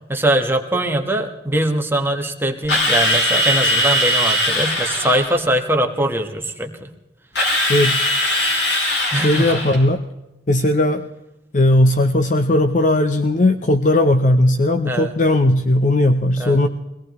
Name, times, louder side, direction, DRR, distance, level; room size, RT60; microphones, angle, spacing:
voice 1, 0.1-6.9 9.1-9.7 14.8-15.1 16.4-16.6, right 1 dB, 15° right, 4 dB, 1.3 m, -21 dB
Drill, 2.7-5.4 7.4-9.8, left 1 dB, 75° left, 4.4 m, -20 dB
voice 2, 7.7-8.1 9.1-10.0 10.5-11.0 11.5-16.7, left 1 dB, 45° left, 8 dB, 0.7 m, -17 dB
23.0 x 17.5 x 3.1 m, 0.98 s
head